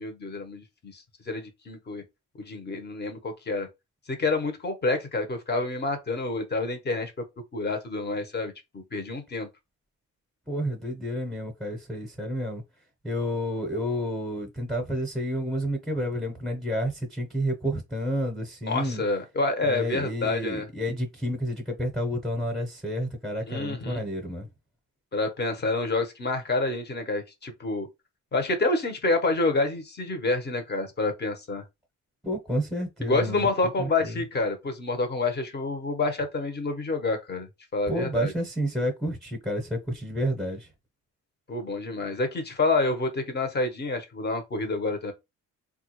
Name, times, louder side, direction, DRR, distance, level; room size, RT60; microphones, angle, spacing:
voice 1, 0.0-2.0 2.4-3.7 4.1-7.1 7.5-9.5 18.6-20.7 23.5-24.0 25.1-27.9 28.3-31.6 33.0-37.5 37.7-38.3 41.5-45.1, left 3 dB, 35° left, 1.1 m, -28 dB
voice 2, 10.5-12.6 13.0-19.0 19.6-24.5 32.2-33.5 33.8-34.2 37.9-40.7, equal, ahead, 1.0 m, -30 dB
3.4 x 2.4 x 3.1 m
cardioid pair, 90°, 30 cm